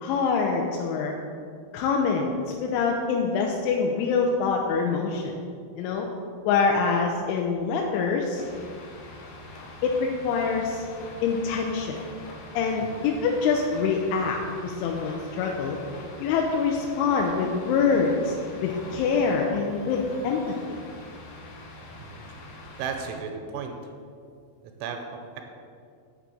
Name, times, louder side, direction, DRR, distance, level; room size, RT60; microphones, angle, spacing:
voice 1, 0.0-1.1 1.7-2.3 2.6-5.3 5.8-6.1 6.5-8.4 9.8-10.8 11.2-12.0 12.5-15.8 16.2-18.3 18.6-20.4 20.7-20.8, left 5 dB, 90° left, 1 dB, 3.1 m, -25 dB
sound 1, 8.3-23.2, left 2 dB, 65° left, 2.4 m, -44 dB
voice 2, 22.8-23.9 24.6-25.4, right 6 dB, 80° right, 4 dB, 3.2 m, -35 dB
7.0 x 6.0 x 7.5 m, 2.2 s
omnidirectional pair, 5.5 m